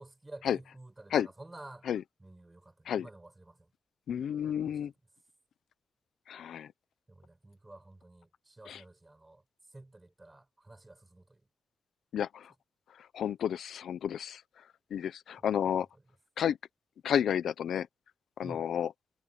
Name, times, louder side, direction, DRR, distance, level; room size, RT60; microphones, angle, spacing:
voice 1, 0.0-1.9 2.2-3.7 4.6-4.8 7.1-9.4 9.7-11.4 15.4-15.5 15.7-15.8 18.4-18.7, right 2 dB, 15° right, 5.8 m, -51 dB
voice 2, 4.1-4.9 6.3-6.7 8.7-8.8 12.1-12.5 13.1-14.4 14.9-15.9 16.4-16.6 17.0-17.9 18.4-18.9, left 9 dB, 90° left, 0.7 m, -31 dB
wide cardioid pair, 180°, 0 cm